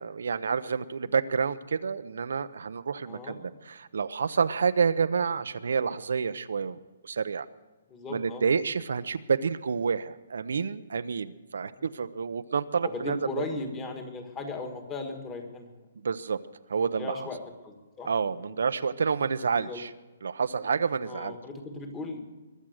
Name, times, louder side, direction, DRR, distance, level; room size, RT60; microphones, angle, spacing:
voice 1, 0.0-6.8 7.0-7.5 8.1-13.2 16.0-16.4 16.7-17.3 18.1-19.9 20.2-21.4, right 5 dB, 80° right, 12 dB, 0.6 m, -29 dB
voice 2, 7.9-8.4 11.6-12.0 12.8-15.8 16.7-18.1 18.4-18.5 19.6-19.8 21.0-22.2, left 3 dB, 15° left, 5 dB, 1.5 m, -37 dB
22.0 x 7.5 x 6.4 m, 1.2 s
hypercardioid pair, 170°, 0 cm